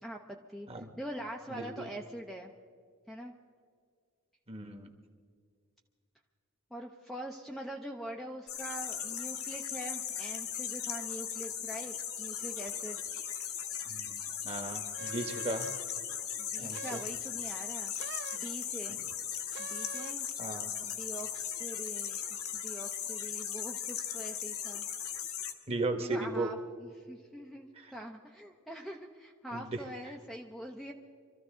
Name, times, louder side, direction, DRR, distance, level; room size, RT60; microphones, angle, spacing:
voice 1, 0.0-2.5 3.1-3.3 6.7-13.0 16.4-17.9 18.3-19.0 19.6-20.3 20.8-24.9 26.0-30.9, right 1 dB, ahead, 0 dB, 0.6 m, -44 dB
voice 2, 1.5-1.9 4.5-4.9 13.9-15.7 16.6-17.0 20.4-20.7 25.7-26.5 27.8-27.9 29.5-29.7, right 2 dB, 25° right, 5 dB, 1.3 m, -36 dB
sound 1, 8.5-25.5, left 9 dB, 75° left, 1.4 m, -38 dB
sound 2, 15.0-16.0 16.7-17.2 18.0-18.5 19.5-20.3, right 6 dB, 50° right, 0.5 m, -45 dB
24.5 x 14.0 x 3.8 m, 2.1 s
head